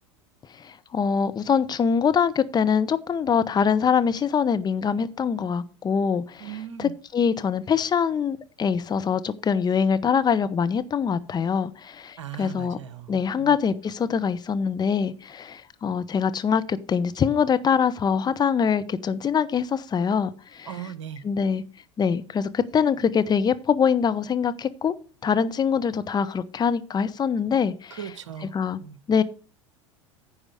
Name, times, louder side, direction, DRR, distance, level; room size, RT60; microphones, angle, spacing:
voice 1, 0.6-6.5 6.8-12.8 13.1-20.7 21.2-21.6 22.0-24.9 25.2-28.0 28.5-28.8 29.1-29.2, left 6 dB, 25° left, 0.9 m, -24 dB
voice 2, 6.4-6.9 12.2-13.5 20.7-21.2 27.9-29.0, right 9 dB, 75° right, 0.9 m, -38 dB
10.0 x 4.8 x 6.4 m
hypercardioid pair, 80°, 16 cm